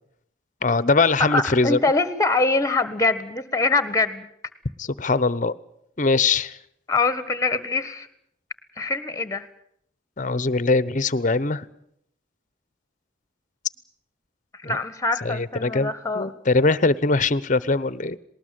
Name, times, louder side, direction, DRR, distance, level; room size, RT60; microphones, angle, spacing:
voice 1, 0.6-1.8 4.8-5.5 6.0-6.6 10.2-11.6 14.6-14.8 15.2-18.2, left 3 dB, 40° left, 18 dB, 0.8 m, -22 dB
voice 2, 1.2-4.3 6.9-8.1 8.8-9.5 14.6-16.3, left 3 dB, 15° left, 13 dB, 1.5 m, -24 dB
19.5 x 19.5 x 9.0 m, 0.72 s
head